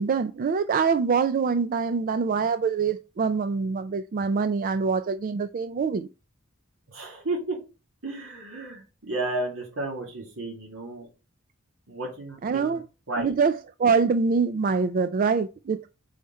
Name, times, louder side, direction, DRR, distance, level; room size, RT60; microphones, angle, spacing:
voice 1, 0.0-6.1 12.4-12.8 13.2-15.9, right 5 dB, 40° right, 0.3 m, -24 dB
voice 2, 6.9-7.6 8.0-11.1 11.9-12.8 13.1-13.3, right 2 dB, 85° right, 2.3 m, -33 dB
4.9 x 4.2 x 5.5 m
head